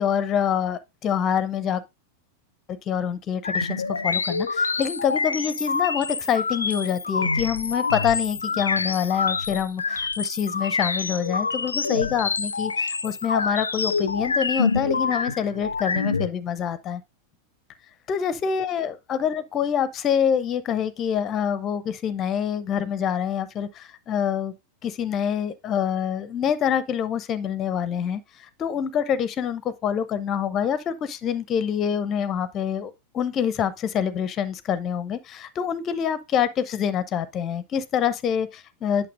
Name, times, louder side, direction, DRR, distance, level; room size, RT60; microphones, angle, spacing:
voice 1, 0.0-1.8 2.7-17.0 18.1-24.5 24.8-39.1, left 8 dB, 30° left, 0.6 m, -26 dB
sound 1, 3.4-16.3, left 4 dB, 75° left, 0.3 m, -26 dB
8.5 x 6.7 x 2.5 m
figure-of-eight pair, 90°, 0 cm